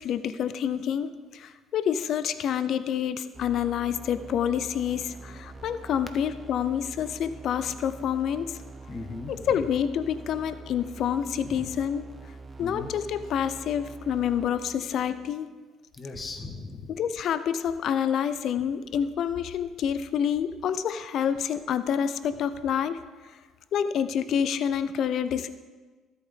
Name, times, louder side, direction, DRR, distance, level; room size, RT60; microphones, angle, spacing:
voice 1, 0.0-8.6 9.3-12.1 12.6-15.5 16.9-23.0 23.7-25.5, left 8 dB, 60° left, 13 dB, 0.5 m, -28 dB
sound 1, 3.3-15.3, right 3 dB, 30° right, 1.1 m, -45 dB
voice 2, 8.9-9.6 11.4-11.7 12.6-12.9 16.0-16.9, left 3 dB, 35° left, 5 dB, 1.5 m, -38 dB
13.0 x 8.5 x 3.7 m, 1.3 s
hypercardioid pair, 65°, 0 cm